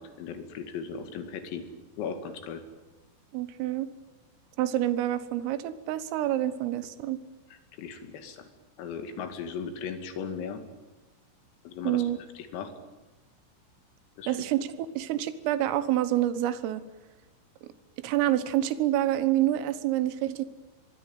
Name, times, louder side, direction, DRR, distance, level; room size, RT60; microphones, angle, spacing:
voice 1, 0.0-1.6 2.0-2.6 7.8-8.5 8.8-10.6 11.6-12.1 12.4-12.7 14.2-14.4, left 6 dB, 80° left, 8 dB, 5.1 m, -37 dB
voice 2, 3.3-3.9 4.6-7.2 11.8-12.2 14.3-16.8 18.0-20.5, right 13 dB, 80° right, 14 dB, 3.7 m, -27 dB
23.5 x 22.0 x 9.4 m, 1.1 s
omnidirectional pair, 6.0 m